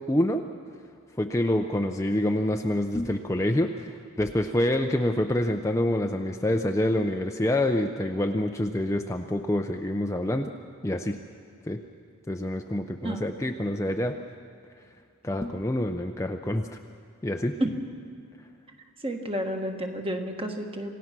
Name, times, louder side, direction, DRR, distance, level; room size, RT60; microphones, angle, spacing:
voice 1, 0.1-0.5 1.2-10.5 10.8-11.2 11.7-11.8 12.3-14.2 15.2-16.7 17.2-17.6, left 1 dB, 15° left, 4 dB, 0.5 m, -26 dB
voice 2, 13.0-13.3 17.6-17.7 19.0-20.9, right 1 dB, 25° right, 4 dB, 1.5 m, -30 dB
27.0 x 17.0 x 6.1 m, 2.3 s
head